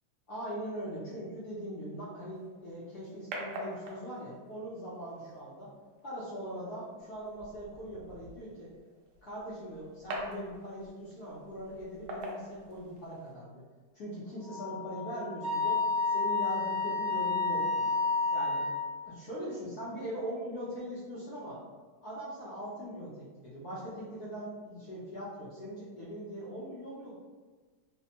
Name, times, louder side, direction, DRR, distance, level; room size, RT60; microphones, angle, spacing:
voice 1, 0.3-5.7 6.0-8.7 9.2-13.5 13.9-15.8 16.1-17.9 18.3-18.6 19.0-21.6 22.0-27.1, equal, 65° left, -8 dB, 1.0 m, -41 dB
sound 1, 2.3-13.3, right 1 dB, 75° right, 1.0 m, -46 dB
Wind instrument woodwind instrument, 14.5-18.8, left 3 dB, 30° left, 0.7 m, -30 dB
3.3 x 2.1 x 2.8 m, 1.4 s
omnidirectional pair, 2.3 m